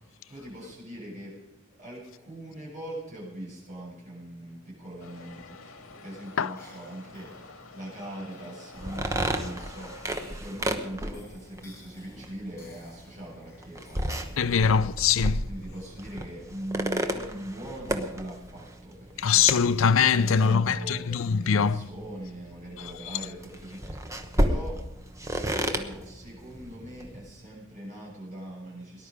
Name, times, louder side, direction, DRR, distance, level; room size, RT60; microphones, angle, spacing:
voice 1, 0.3-1.3 1.8-14.8 15.4-19.6 20.1-29.1, right 1 dB, 35° right, 7.5 m, -41 dB
sound 1, 4.9-14.8, left 1 dB, 15° left, 4.0 m, -55 dB
sound 2, 5.0-10.3, left 4 dB, 85° left, 1.9 m, -48 dB
sound 3, 8.7-27.3, right 1 dB, 15° right, 1.0 m, -34 dB
voice 2, 14.4-15.5 19.2-21.8, left 6 dB, 70° left, 0.5 m, -22 dB
19.0 x 11.0 x 5.3 m
head